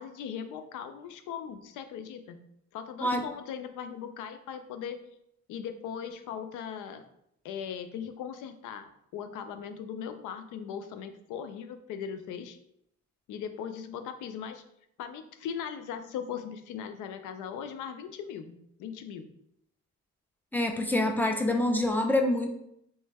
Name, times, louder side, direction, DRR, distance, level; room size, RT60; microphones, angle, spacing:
voice 1, 0.0-2.4 2.7-5.0 5.5-7.1 7.4-12.6 13.3-14.6 15.0-19.3, left 8 dB, 90° left, 9 dB, 0.5 m, -39 dB
voice 2, 20.5-22.5, left 1 dB, 5° left, 4 dB, 0.5 m, -26 dB
3.3 x 3.0 x 3.3 m, 0.75 s
cardioid pair, 90°, 30 cm